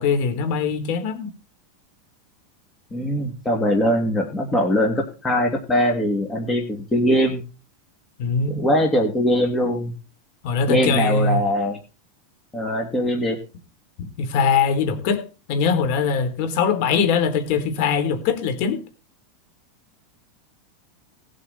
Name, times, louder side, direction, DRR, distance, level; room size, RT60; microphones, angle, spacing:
voice 1, 0.0-1.3 8.2-8.6 10.4-11.4 14.0-18.8, left 5 dB, 55° left, 3.6 m, -22 dB
voice 2, 2.9-7.4 8.5-9.9 10.7-11.8 12.5-13.4, equal, 15° left, 2.6 m, -21 dB
18.5 x 8.1 x 4.2 m
supercardioid pair, 135°, 0 cm